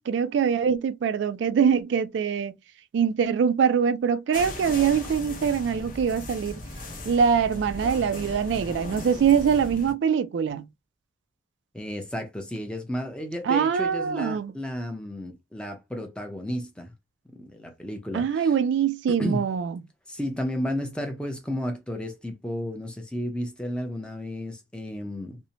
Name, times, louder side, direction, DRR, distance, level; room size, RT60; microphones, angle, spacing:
voice 1, 0.0-2.5 2.9-6.6 7.1-10.7 13.4-14.5 18.1-19.8, right 7 dB, 80° right, 0.3 m, -23 dB
sound 1, 4.3-9.9, left 1 dB, 45° left, 0.7 m, -37 dB
voice 2, 11.7-16.9 17.3-18.5 19.1-19.4 20.1-25.4, equal, 5° left, 0.5 m, -33 dB
2.7 x 2.1 x 2.7 m
head